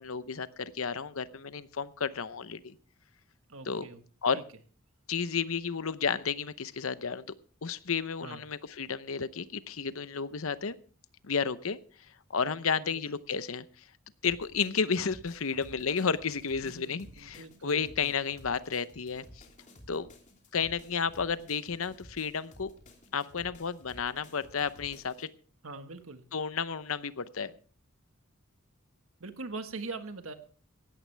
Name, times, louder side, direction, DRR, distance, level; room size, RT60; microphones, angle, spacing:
voice 1, 0.0-2.8 3.6-3.9 4.2-4.4 5.1-7.3 7.6-10.7 11.2-11.8 12.3-13.8 14.2-19.4 19.9-20.1 20.5-22.7 23.1-25.3 26.3-27.5, left 6 dB, 70° left, 14 dB, 0.8 m, -32 dB
voice 2, 3.5-4.0 4.3-4.4 8.2-8.4 12.8-13.0 16.6-18.1 25.6-26.2 29.2-30.3, right 3 dB, 70° right, 8 dB, 1.6 m, -42 dB
sound 1, 14.2-25.3, equal, 35° left, 3.0 m, -54 dB
17.5 x 13.5 x 3.4 m, 0.40 s
head